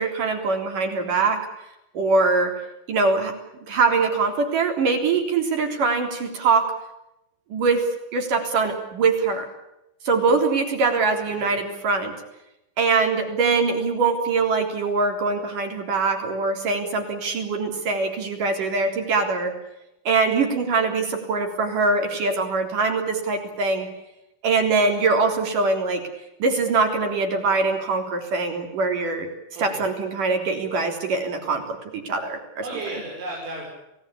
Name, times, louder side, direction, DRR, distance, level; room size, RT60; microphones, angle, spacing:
voice 1, 0.0-1.4 1.9-2.6 2.9-3.3 3.7-6.7 7.5-9.5 10.0-12.1 12.8-19.5 20.0-23.9 24.4-26.1 26.4-29.3 29.6-32.4, right 4 dB, 45° right, 4 dB, 4.8 m, -23 dB
voice 2, 11.2-11.6 29.5-29.9 32.6-33.7, right 2 dB, 90° right, -3 dB, 8.9 m, -34 dB
29.0 x 18.5 x 8.6 m, 0.89 s
omnidirectional pair, 5.5 m